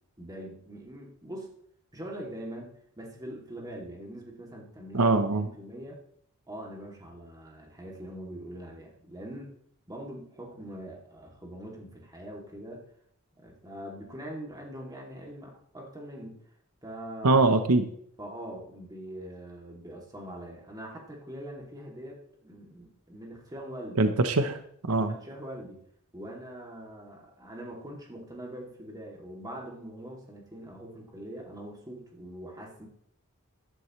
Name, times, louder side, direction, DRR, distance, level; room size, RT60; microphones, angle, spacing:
voice 1, 0.2-1.5 1.9-5.1 5.4-6.0 6.5-9.5 9.9-12.9 13.4-16.4 16.8-17.4 18.2-24.0 25.1-25.8 26.1-32.9, right 1 dB, 15° right, -1 dB, 2.8 m, -43 dB
voice 2, 4.9-5.5 17.2-17.9 24.0-24.6 24.9-25.2, right 3 dB, 80° right, 8 dB, 1.0 m, -22 dB
14.0 x 11.5 x 3.2 m, 0.68 s
head